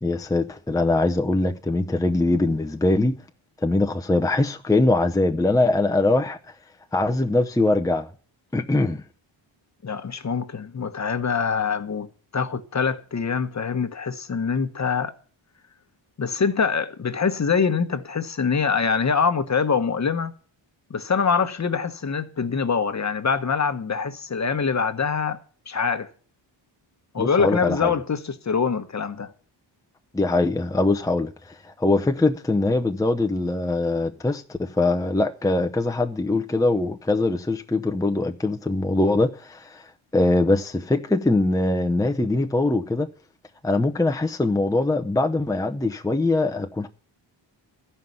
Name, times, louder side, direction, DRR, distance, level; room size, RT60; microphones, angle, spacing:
voice 1, 0.0-3.2 3.6-6.4 6.9-8.1 8.5-9.0 27.2-27.9 30.1-43.1 43.6-46.9, left 2 dB, 5° left, 0.7 m, -22 dB
voice 2, 9.8-12.1 12.3-15.1 16.2-20.3 20.9-25.4 25.7-26.1 27.1-29.3, left 5 dB, 35° left, 1.2 m, -24 dB
14.5 x 5.6 x 9.3 m
wide cardioid pair, 105°, 46 cm